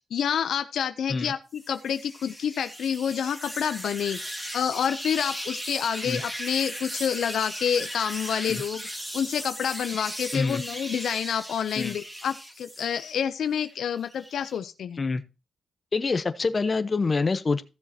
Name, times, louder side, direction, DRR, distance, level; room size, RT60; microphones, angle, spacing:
voice 1, 0.1-15.0, left 8 dB, 85° left, 0.5 m, -28 dB
sound 1, 1.6-13.2 13.6-14.6, equal, 15° right, 2.6 m, -37 dB
voice 2, 15.9-17.6, left 4 dB, 40° left, 0.9 m, -26 dB
15.5 x 7.1 x 2.8 m
cardioid pair, 90°, 0 cm